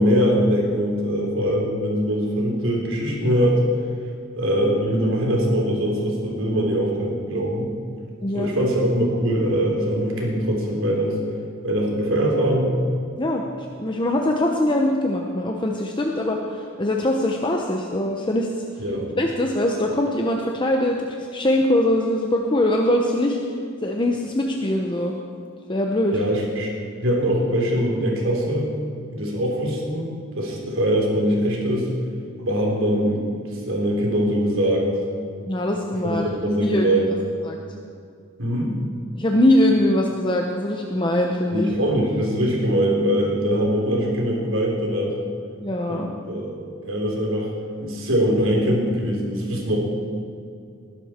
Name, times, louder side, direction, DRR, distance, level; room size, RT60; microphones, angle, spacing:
voice 1, 0.0-3.6 4.4-7.7 8.3-11.1 11.6-12.7 18.8-19.1 26.1-26.7 27.0-28.7 29.1-30.1 30.3-31.9 32.4-34.9 36.0-37.1 38.4-38.8 41.5-45.2 45.9-46.6 46.8-47.5 47.8-49.8, equal, 75° right, -1 dB, 3.5 m, -22 dB
voice 2, 8.2-8.5 13.2-13.4 13.8-18.6 19.2-23.4 23.8-25.1 25.7-26.2 35.5-36.3 36.6-36.9 37.4-37.6 39.2-41.7 45.6-46.1, left 1 dB, 25° left, 1 dB, 0.9 m, -22 dB
20.5 x 11.5 x 4.5 m, 2.4 s
head